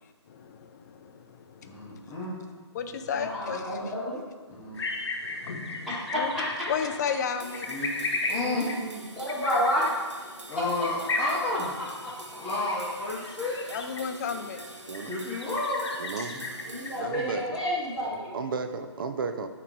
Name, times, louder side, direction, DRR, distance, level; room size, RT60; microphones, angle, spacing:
voice 1, 0.0-2.0 2.7-3.9 4.5-4.8 5.2-5.9 6.1-6.3 6.7-7.7 13.7-14.6 17.0-17.1, left 6 dB, 40° left, 8 dB, 0.4 m, -34 dB
voice 2, 1.6-2.4 4.6-4.8 7.7-8.7 10.5-11.7 12.4-13.7 15.1-15.9 16.3-16.4, left 2 dB, 15° left, -7 dB, 0.8 m, -31 dB
voice 3, 3.1-4.2 5.9-6.4 8.3-9.9 11.2-11.3 11.8-12.5 16.7-18.4, equal, 5° right, -10 dB, 1.7 m, -30 dB
sound 1, 4.7-17.4, left 3 dB, 65° left, 0.9 m, -36 dB
sound 2, 7.4-17.0, right 2 dB, 85° right, 1.1 m, -46 dB
voice 4, 16.0-16.4 17.0-17.6 18.3-19.5, right 4 dB, 50° right, 8 dB, 0.4 m, -33 dB
8.3 x 2.9 x 4.6 m, 1.4 s
hypercardioid pair, 150°, 15 cm